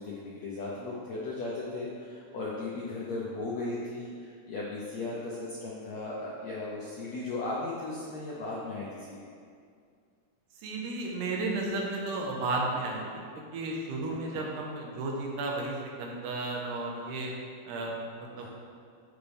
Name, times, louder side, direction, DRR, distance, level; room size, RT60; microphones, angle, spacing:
voice 1, 0.0-9.2 14.3-14.4 18.4-18.5, left 2 dB, 75° left, -5 dB, 1.6 m, -36 dB
voice 2, 10.6-13.3 13.5-17.3 17.6-18.5, right 2 dB, 85° right, -1 dB, 3.3 m, -33 dB
11.5 x 8.1 x 3.5 m, 2.2 s
omnidirectional pair, 4.6 m